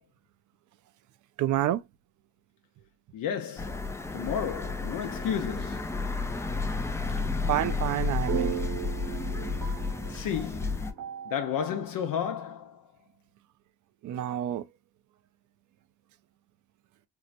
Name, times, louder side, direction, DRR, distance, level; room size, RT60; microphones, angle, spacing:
voice 1, 1.4-1.8 7.5-8.6 9.4-9.5 14.0-14.7, right 12 dB, 55° right, 0.4 m, -28 dB
voice 2, 3.1-5.9 10.1-10.9 11.3-12.8, left 8 dB, 60° left, 0.6 m, -32 dB
sound 1, 3.6-10.9, left 3 dB, 10° left, 0.3 m, -32 dB
sound 2, 8.3-11.8, right 9 dB, 70° right, 1.0 m, -36 dB
4.5 x 2.0 x 2.4 m
cardioid pair, 110°, 37 cm